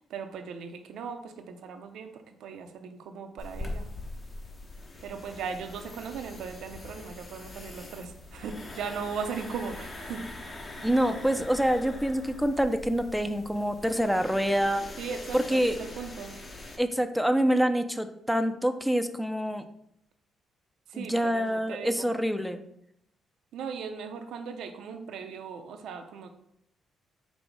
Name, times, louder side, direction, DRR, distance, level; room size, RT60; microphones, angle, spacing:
voice 1, 0.0-3.9 5.0-10.2 10.7-10.9 15.0-16.4 20.9-22.1 23.5-26.3, right 6 dB, 75° right, 6 dB, 0.5 m, -38 dB
sound 1, 3.4-16.8, left 2 dB, 30° left, 0.7 m, -42 dB
voice 2, 10.8-14.8 15.3-15.8 16.8-19.7 20.9-22.6, equal, ahead, 9 dB, 0.4 m, -26 dB
5.1 x 2.0 x 4.6 m, 0.75 s
cardioid pair, 90°, 0 cm